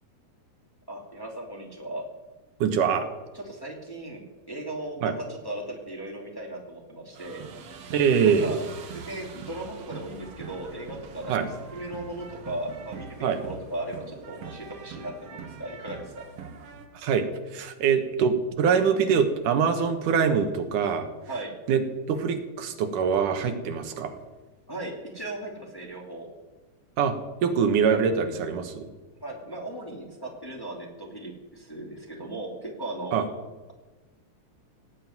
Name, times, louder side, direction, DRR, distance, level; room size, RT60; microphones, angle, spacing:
voice 1, 0.9-2.0 3.3-7.4 8.2-8.6 8.9-16.1 21.3-21.5 24.7-26.3 29.2-33.3, right 1 dB, 10° left, -1 dB, 2.2 m, -37 dB
voice 2, 2.6-3.1 5.0-5.1 7.9-8.5 11.3-11.5 13.2-13.4 16.9-17.3 17.5-21.1 21.7-21.8 22.1-24.2 27.0-27.2 27.4-28.9 33.1-33.2, right 6 dB, 85° right, 7 dB, 2.9 m, -23 dB
sound 1, 7.1-16.9, right 6 dB, 55° right, 2.1 m, -43 dB
17.5 x 7.8 x 9.4 m, 1.2 s
omnidirectional pair, 3.6 m